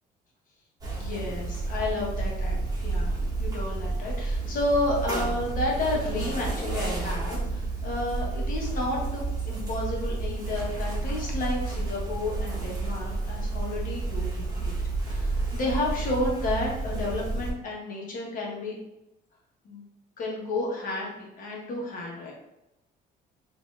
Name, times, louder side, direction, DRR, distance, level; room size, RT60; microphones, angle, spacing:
sound 1, 0.8-17.5, right 3 dB, 20° right, 1.1 m, -30 dB
voice 1, 0.9-14.7 15.0-18.7 19.6-19.8 20.2-21.1 21.4-22.3, left 2 dB, 50° left, -3 dB, 1.2 m, -31 dB
4.2 x 2.7 x 2.4 m, 0.91 s
cardioid pair, 110°, 17 cm